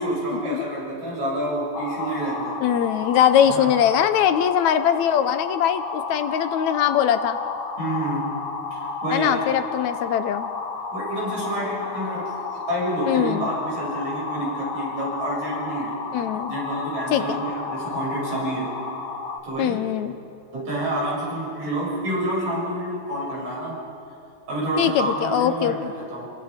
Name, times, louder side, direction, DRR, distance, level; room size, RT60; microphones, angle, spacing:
voice 1, 0.0-2.6 3.5-3.7 7.8-8.4 8.7-9.5 10.9-15.9 16.5-18.7 19.4-19.8 20.5-23.8 24.5-26.3, right 1 dB, 65° right, -5 dB, 8.6 m, -28 dB
sound 1, 1.7-19.4, left 4 dB, 50° left, 1.9 m, -32 dB
voice 2, 2.6-7.4 9.1-10.5 13.1-13.5 16.1-16.5 17.1-17.4 19.6-20.2 24.8-25.9, left 9 dB, 75° left, 10 dB, 2.0 m, -21 dB
29.0 x 22.5 x 5.1 m, 2.6 s
omnidirectional pair, 3.5 m